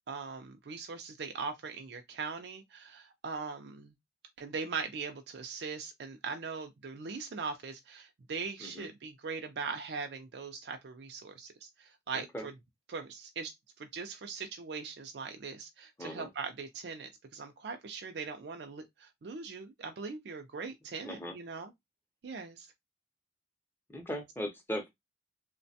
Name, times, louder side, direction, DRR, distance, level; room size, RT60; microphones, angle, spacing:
voice 1, 0.1-3.9 4.4-12.5 12.9-21.7 22.2-22.7, right 5 dB, 70° right, 0.4 m, -40 dB
voice 2, 12.1-12.5 16.0-16.3 21.0-21.4 23.9-24.9, equal, 10° left, 0.6 m, -38 dB
3.1 x 2.1 x 2.6 m
head